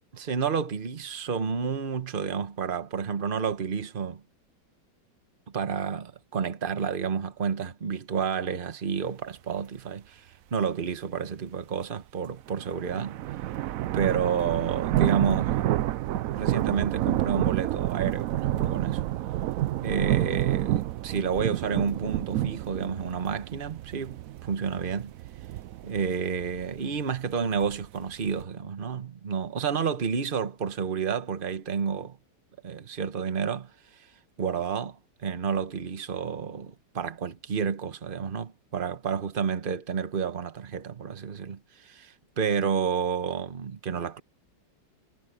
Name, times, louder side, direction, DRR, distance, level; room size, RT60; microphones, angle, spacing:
voice 1, 0.1-4.2 5.5-13.2 13.9-15.6 16.3-19.0 19.8-25.1 25.8-32.2 32.6-33.7 34.0-34.1 34.4-44.2, right 6 dB, 35° right, 1.2 m, -30 dB
sound 1, 12.5-28.4, right 14 dB, 70° right, 0.8 m, -29 dB
omnidirectional pair, 1.9 m